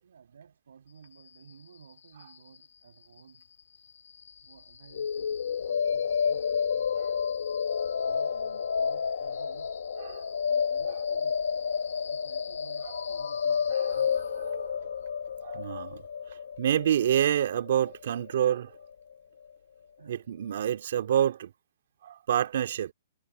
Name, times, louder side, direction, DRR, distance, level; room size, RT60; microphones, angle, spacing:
voice 1, 0.0-3.5 4.4-6.9 7.8-9.7 10.4-11.4 12.0-14.7 15.4-15.6 20.0-20.3, right 7 dB, 85° right, 7.6 m, -55 dB
sound 1, 4.9-18.9, left 6 dB, 85° left, 1.5 m, -30 dB
voice 2, 13.7-14.8 15.4-16.0 16.6-18.7 20.1-21.5 22.0-22.9, right 10 dB, 65° right, 2.3 m, -28 dB
hypercardioid pair, 150°, 0 cm